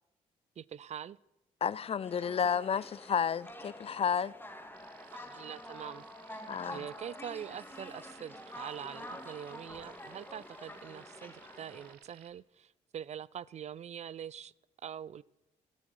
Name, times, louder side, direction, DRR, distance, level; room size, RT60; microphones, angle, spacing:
voice 1, 0.6-1.2 5.1-6.4 6.7-14.5 14.8-15.2, right 9 dB, 45° right, 0.4 m, -44 dB
voice 2, 1.6-4.3 6.5-6.8, left 7 dB, 40° left, 0.4 m, -31 dB
sound 1, 2.0-11.9, left 1 dB, 15° left, 2.0 m, -48 dB
sound 2, 4.7-12.3, right 11 dB, 75° right, 0.9 m, -59 dB
12.0 x 8.4 x 6.4 m
hypercardioid pair, 50°, 16 cm